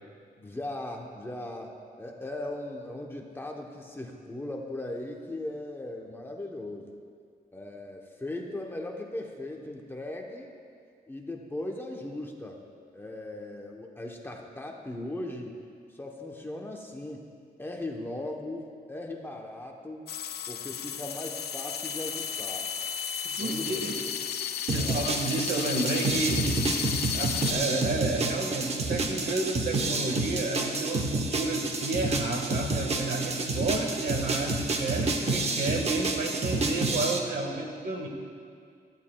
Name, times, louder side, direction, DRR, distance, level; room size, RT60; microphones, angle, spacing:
voice 1, 0.4-6.9 7.5-10.5 11.1-12.6 12.9-15.6 15.9-17.3 17.6-20.1 20.5-22.7 23.4-24.1 24.8-25.1 37.5-37.7, left 1 dB, 15° left, 0 dB, 0.8 m, -38 dB
sound 1, 20.1-27.5, left 8 dB, 80° left, 0.5 m, -34 dB
voice 2, 23.2-23.9 24.7-26.4 27.1-38.1, right 3 dB, 65° right, 2 dB, 1.5 m, -31 dB
sound 2, 24.7-37.2, right 2 dB, 40° right, 0.9 m, -29 dB
16.0 x 14.0 x 2.3 m, 2.2 s
wide cardioid pair, 170°, 17 cm